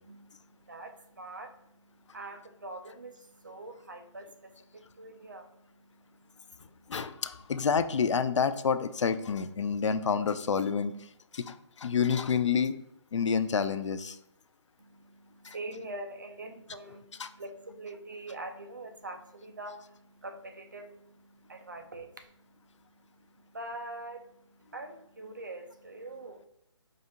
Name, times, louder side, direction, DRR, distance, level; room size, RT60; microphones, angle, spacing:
voice 1, 0.0-7.3 14.8-26.5, right 2 dB, 40° right, 6 dB, 0.4 m, -45 dB
voice 2, 6.9-10.9 11.3-12.8 13.1-14.2 15.4-15.5 17.2-17.3, left 6 dB, 70° left, 12 dB, 0.4 m, -28 dB
4.9 x 2.6 x 2.7 m, 0.75 s
hypercardioid pair, 175°, 16 cm